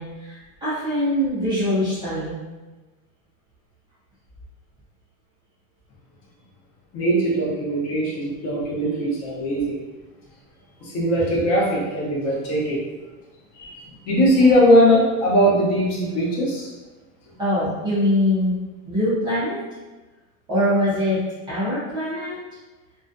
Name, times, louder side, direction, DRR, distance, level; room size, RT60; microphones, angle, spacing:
voice 1, 0.0-2.4 17.4-18.6 18.9-19.6 20.5-21.2 21.5-22.4, left 1 dB, 10° right, -14 dB, 0.3 m, -23 dB
voice 2, 6.9-9.7 10.8-12.8 13.5-16.7, equal, 40° left, -4 dB, 0.7 m, -20 dB
2.3 x 2.2 x 2.5 m, 1.2 s
supercardioid pair, 155°, 40 cm